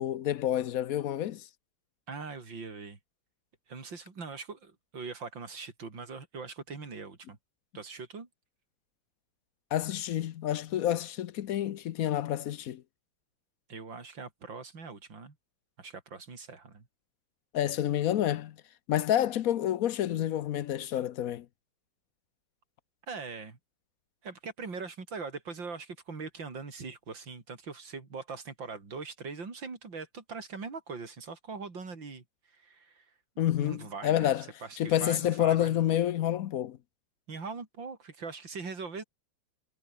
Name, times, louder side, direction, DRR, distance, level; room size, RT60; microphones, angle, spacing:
voice 1, 0.0-1.5 9.7-12.8 17.5-18.6 18.9-21.5 33.4-34.4 34.8-36.8, left 11 dB, 65° left, 0.9 m, -28 dB
voice 2, 2.1-3.0 3.7-7.4 7.7-8.3 13.7-15.4 15.8-16.9 23.1-23.6 24.2-33.1 33.6-35.8 37.3-39.0, right 4 dB, 75° right, 4.5 m, -41 dB
omnidirectional pair, 2.1 m